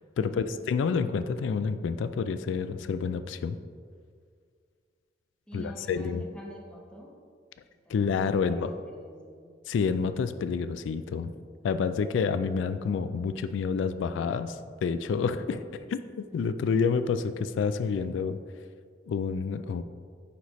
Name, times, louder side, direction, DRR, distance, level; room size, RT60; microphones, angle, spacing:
voice 1, 0.2-3.6 5.5-6.2 7.9-8.7 9.7-11.3 11.6-16.0 16.3-18.4 19.1-19.8, left 5 dB, 90° left, 12 dB, 0.3 m, -28 dB
voice 2, 5.5-7.1 7.6-9.5, equal, 5° left, -2 dB, 1.0 m, -46 dB
9.4 x 4.1 x 3.1 m, 2.1 s
head